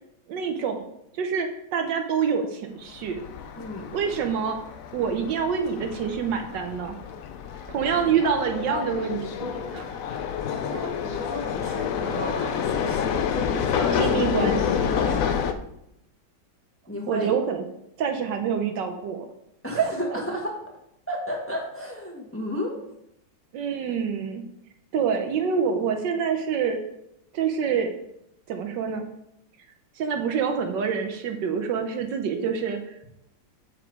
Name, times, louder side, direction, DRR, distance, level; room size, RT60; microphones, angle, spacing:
voice 1, 0.3-0.8 1.1-3.2 3.9-4.6 4.9-7.0 7.7-9.9 13.9-14.9 17.1-17.6 18.0-19.3 19.7-20.2 23.5-24.4 24.9-26.8 27.3-27.9 28.5-29.1 30.0-33.1, right 6 dB, 70° right, 5 dB, 1.4 m, -26 dB
sound 1, 3.0-15.5, left 7 dB, 75° left, 0.7 m, -28 dB
voice 2, 3.5-3.9 10.7-14.2 14.9-15.3 16.9-17.3 19.6-20.6 21.1-22.8, left 1 dB, 10° left, -1 dB, 1.1 m, -33 dB
7.4 x 5.0 x 4.6 m, 0.80 s
omnidirectional pair, 2.1 m